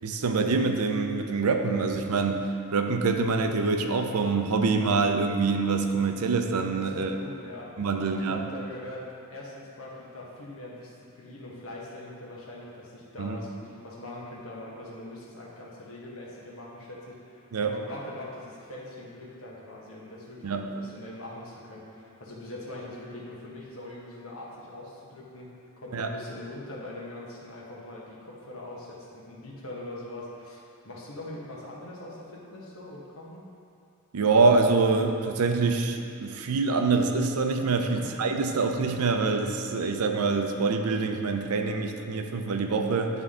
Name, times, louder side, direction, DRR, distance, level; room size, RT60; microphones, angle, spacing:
voice 1, 0.0-2.5 2.7-7.1 7.8-8.4 13.2-13.4 17.5-17.7 20.4-20.7 25.9-26.1 34.1-43.2, right 4 dB, 90° right, 5 dB, 0.5 m, -25 dB
voice 2, 6.9-7.7 8.0-25.5 25.8-33.4 37.9-38.2, left 1 dB, 70° left, -4 dB, 1.2 m, -42 dB
9.8 x 3.7 x 3.7 m, 2.5 s
head